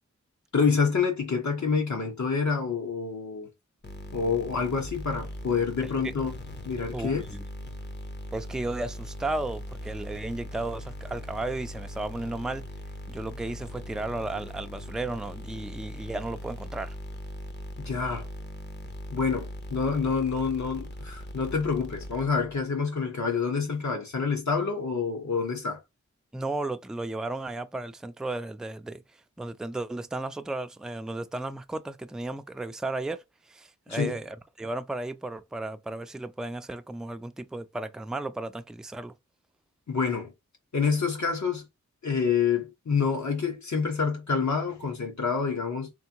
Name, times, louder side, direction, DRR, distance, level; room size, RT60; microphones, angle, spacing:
voice 1, 0.5-3.5 4.1-6.3 6.6-7.2 17.8-18.3 19.1-25.8 33.9-34.2 39.9-40.3 40.7-41.6 42.0-45.9, left 5 dB, 70° left, 1.4 m, -27 dB
sound 1, 3.8-22.6, left 1 dB, 35° left, 0.8 m, -40 dB
voice 2, 6.9-7.4 8.3-12.6 13.1-16.9 26.3-39.1, right 2 dB, ahead, 0.3 m, -34 dB
3.6 x 3.4 x 2.9 m
wide cardioid pair, 85°, 30 cm